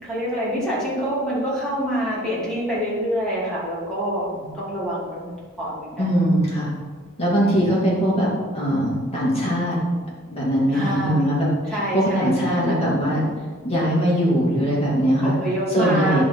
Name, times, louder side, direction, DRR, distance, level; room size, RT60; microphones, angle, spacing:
voice 1, 0.0-4.3 4.5-5.3 5.6-6.2 10.7-11.3 11.7-12.8 15.2-16.2, equal, 5° left, -8 dB, 2.9 m, -26 dB
voice 2, 6.0-6.7 7.2-8.3 8.5-9.8 10.3-11.5 11.9-13.2 13.6-15.4 15.7-16.2, equal, 30° left, -6 dB, 2.7 m, -20 dB
10.5 x 4.3 x 5.6 m, 1.4 s
head